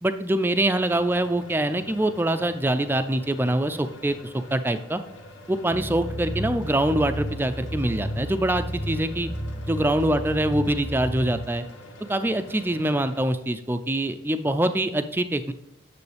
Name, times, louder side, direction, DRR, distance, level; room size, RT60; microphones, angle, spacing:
voice 1, 0.0-5.0 5.5-9.3 9.7-11.7 12.1-15.5, right 1 dB, 10° right, 9 dB, 0.4 m, -24 dB
sound 1, 0.7-13.2, left 1 dB, 90° left, 1.1 m, -46 dB
sound 2, 5.7-11.4, equal, 35° left, 1.0 m, -32 dB
9.4 x 7.0 x 3.4 m, 0.83 s
head